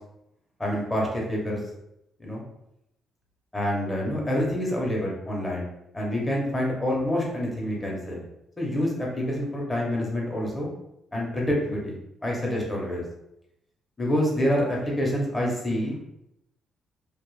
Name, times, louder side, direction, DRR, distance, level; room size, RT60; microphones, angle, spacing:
voice 1, 0.6-1.6 2.2-2.4 3.5-5.7 5.9-8.2 8.6-10.7 11.1-11.9 12.2-13.0 14.0-16.0, left 1 dB, 20° left, -3 dB, 0.9 m, -27 dB
2.4 x 2.1 x 3.1 m, 0.82 s
cardioid pair, 90°, 0 cm